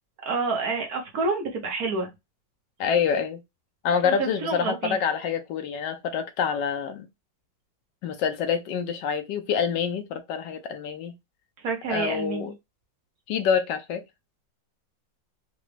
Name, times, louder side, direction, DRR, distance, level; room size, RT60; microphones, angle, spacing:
voice 1, 0.2-2.1 4.0-5.0 11.6-12.5, right 4 dB, 60° right, 1.3 m, -28 dB
voice 2, 2.8-3.4 3.8-7.1 8.0-11.1 11.9-12.5 13.3-14.0, left 7 dB, 75° left, 1.2 m, -26 dB
3.9 x 2.2 x 3.1 m
omnidirectional pair, 2.0 m